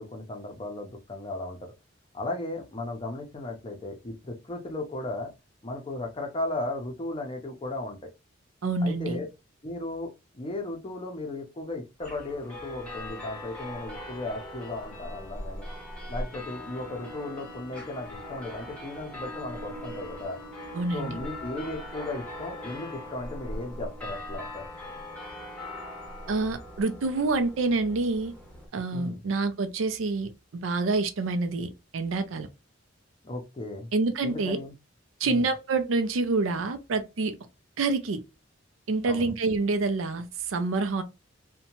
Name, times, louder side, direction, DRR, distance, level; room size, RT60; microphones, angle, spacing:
voice 1, 0.0-1.6 2.1-5.3 5.6-8.0 8.8-9.3 9.6-15.7 16.1-20.4 20.9-24.6 28.9-29.2 33.2-33.9 34.2-34.7 35.2-35.5 39.0-39.3, left 2 dB, 25° left, 0.5 m, -36 dB
voice 2, 8.6-9.2 20.7-21.2 26.3-28.3 28.7-32.5 33.9-34.6 35.2-37.3 37.8-38.2 38.9-41.0, right 3 dB, 85° right, 0.4 m, -27 dB
sound 1, 12.0-28.7, left 1 dB, 5° left, 0.8 m, -40 dB
2.7 x 2.1 x 2.9 m
head